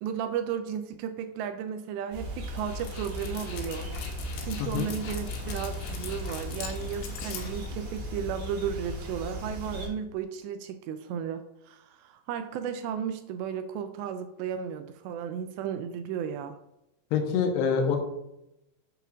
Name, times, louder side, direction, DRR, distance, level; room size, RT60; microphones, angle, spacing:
voice 1, 0.0-3.9 4.4-16.6, right 8 dB, 85° right, 9 dB, 2.6 m, -34 dB
sound 1, 2.1-9.9, equal, 55° right, 3.1 m, -37 dB
Dog, 2.4-8.2, left 5 dB, 90° left, 3.6 m, -41 dB
voice 2, 17.1-18.0, left 6 dB, 75° left, 1 dB, 2.9 m, -25 dB
9.0 x 7.7 x 2.5 m, 0.85 s
omnidirectional pair, 5.3 m